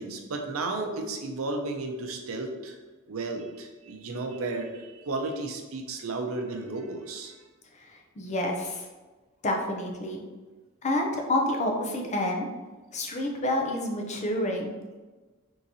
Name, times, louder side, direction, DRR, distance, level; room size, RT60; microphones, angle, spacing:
voice 1, 0.0-2.8 3.1-7.4, right 2 dB, 80° right, 4 dB, 0.6 m, -33 dB
voice 2, 8.2-8.8 9.4-10.2 10.8-12.5 12.9-14.8, left 1 dB, 35° left, 1 dB, 0.6 m, -28 dB
3.7 x 2.9 x 4.0 m, 1.3 s
head